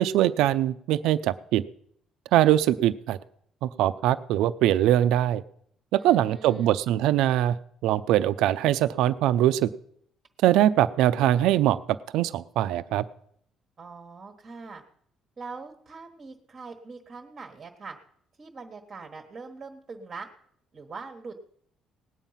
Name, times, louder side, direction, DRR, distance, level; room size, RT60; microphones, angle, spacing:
voice 1, 0.0-1.6 2.3-3.2 3.6-5.4 5.9-7.6 7.8-9.7 10.4-11.8 12.1-13.0, right 13 dB, 85° right, 13 dB, 0.5 m, -22 dB
voice 2, 6.0-6.7 13.8-14.8 15.4-18.0 18.4-20.3 20.7-21.5, right 4 dB, 25° right, 3 dB, 1.2 m, -42 dB
18.5 x 9.1 x 5.7 m, 0.66 s
cardioid pair, 175°, 0 cm